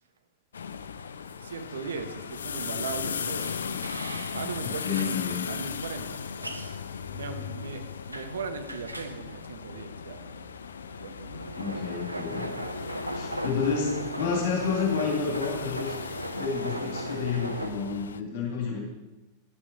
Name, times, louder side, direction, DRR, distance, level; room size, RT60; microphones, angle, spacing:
sound 1, 0.5-18.2, left 6 dB, 70° left, 0.4 m, -37 dB
voice 1, 1.4-3.5 4.3-5.1 5.5-6.7 7.1-10.3 11.0-11.4, right 5 dB, 65° right, 6 dB, 1.0 m, -38 dB
sound 2, 3.4-17.7, right 1 dB, 85° right, 0.6 m, -38 dB
voice 2, 4.6-5.5 11.6-12.6 13.1-16.0 16.4-18.8, left 5 dB, 50° left, 0 dB, 2.2 m, -30 dB
11.0 x 8.8 x 4.0 m, 1.1 s
figure-of-eight pair, 90°, 0 cm